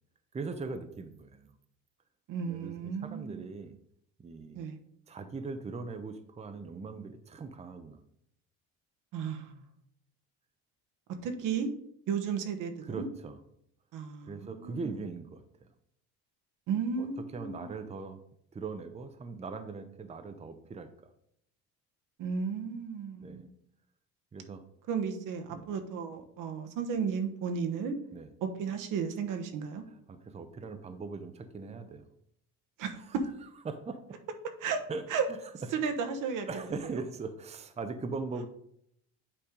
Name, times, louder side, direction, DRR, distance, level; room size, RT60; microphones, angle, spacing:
voice 1, 0.3-1.5 2.4-3.8 4.2-4.6 5.1-8.0 12.8-13.4 14.2-15.7 17.0-17.1 17.3-18.2 18.5-20.9 23.2-23.5 24.3-24.6 25.5-25.7 28.1-28.3 29.9-32.1 33.0-33.1 33.7-34.2 34.9-35.1 36.5-38.5, right 4 dB, 20° right, 9 dB, 0.7 m, -40 dB
voice 2, 2.3-3.5 4.5-4.8 9.1-9.7 11.2-11.7 12.1-13.1 13.9-15.0 16.7-17.8 22.2-23.5 24.9-28.0 28.4-29.8 32.8-33.2 34.6-34.8 35.1-35.3 35.7-36.5, right 6 dB, 65° right, 6 dB, 1.1 m, -34 dB
8.7 x 3.3 x 5.1 m, 0.71 s
supercardioid pair, 100°, 34 cm